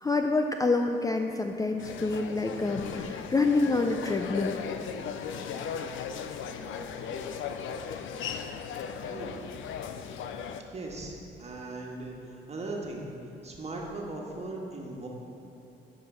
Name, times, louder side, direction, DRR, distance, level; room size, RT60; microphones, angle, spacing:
voice 1, 0.0-4.6, left 3 dB, 15° left, 4 dB, 0.4 m, -27 dB
sound 1, 1.8-10.6, left 7 dB, 75° left, 0.6 m, -37 dB
voice 2, 9.1-9.5 10.7-13.1 13.4-15.1, right 2 dB, 35° right, -1 dB, 1.7 m, -38 dB
9.4 x 5.1 x 6.1 m, 2.9 s
cardioid pair, 90°, 20 cm